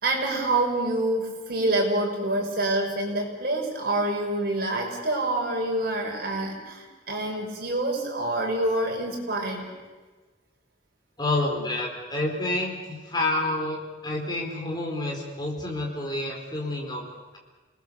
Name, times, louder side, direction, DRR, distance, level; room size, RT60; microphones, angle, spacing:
voice 1, 0.0-9.6, right 2 dB, 50° right, 0 dB, 5.8 m, -27 dB
voice 2, 11.2-17.4, left 2 dB, 20° left, 0 dB, 4.4 m, -29 dB
28.5 x 20.5 x 7.0 m, 1.3 s
head